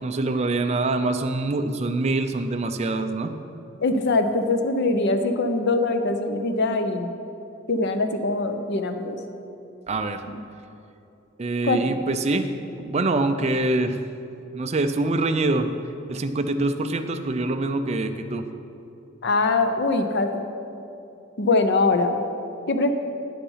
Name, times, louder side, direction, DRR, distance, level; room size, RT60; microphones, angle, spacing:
voice 1, 0.0-3.3 9.9-10.2 11.4-12.5 12.8-14.0 14.5-15.7 16.1-18.5, right 2 dB, 30° right, 7 dB, 0.5 m, -24 dB
voice 2, 3.8-7.1 7.7-9.2 10.3-10.4 11.6-11.8 19.2-20.4 21.4-22.2 22.7-22.9, left 3 dB, 55° left, 7 dB, 0.6 m, -22 dB
9.3 x 7.1 x 5.6 m, 2.7 s
head